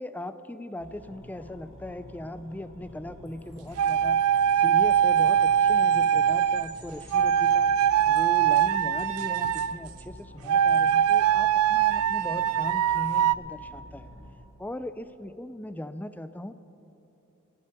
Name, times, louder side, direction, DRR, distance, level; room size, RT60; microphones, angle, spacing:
voice 1, 0.0-4.3 4.5-7.7 8.1-14.1 14.6-16.5, left 1 dB, 10° left, 12 dB, 0.4 m, -39 dB
sound 1, 0.8-14.3, equal, 60° left, 2.8 m, -48 dB
Wind chime, 3.3-8.9, left 6 dB, 75° left, 3.2 m, -56 dB
sound 2, 3.8-6.7 7.1-9.8 10.5-13.3, right 9 dB, 80° right, 0.3 m, -22 dB
18.0 x 8.4 x 6.7 m, 2.9 s
head